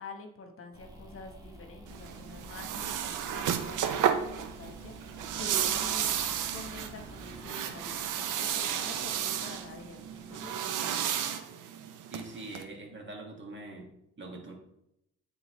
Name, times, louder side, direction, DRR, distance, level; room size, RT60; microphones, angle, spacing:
voice 1, 0.0-10.9, left 4 dB, 45° left, 4 dB, 1.2 m, -48 dB
sound 1, 0.7-11.2, right 1 dB, 10° right, 1.6 m, -51 dB
sound 2, 1.9-12.6, right 9 dB, 85° right, 0.7 m, -33 dB
voice 2, 12.1-13.9 14.2-14.5, right 2 dB, 40° right, 1 dB, 1.8 m, -43 dB
9.3 x 3.8 x 3.1 m, 0.80 s
cardioid pair, 90°, 30 cm